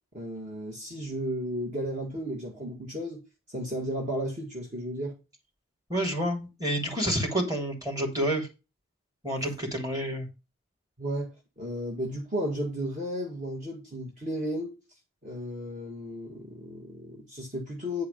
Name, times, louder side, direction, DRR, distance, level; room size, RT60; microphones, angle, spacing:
voice 1, 0.1-3.2 3.5-5.2 11.0-14.7 15.2-18.0, equal, 40° right, 2.0 m, -34 dB
voice 2, 5.9-8.5 9.2-10.3, equal, 20° right, 3.1 m, -29 dB
9.7 x 4.8 x 5.1 m
head